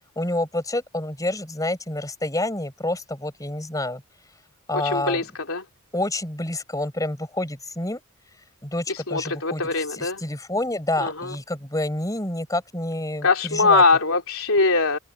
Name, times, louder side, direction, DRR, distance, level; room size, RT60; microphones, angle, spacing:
voice 1, 0.2-4.0 4.7-5.2 5.9-8.0 8.6-13.8, left 1 dB, 15° left, 4.4 m, -28 dB
voice 2, 4.7-5.6 9.1-10.2 11.0-11.1 13.2-15.0, left 3 dB, 70° left, 3.1 m, -21 dB
head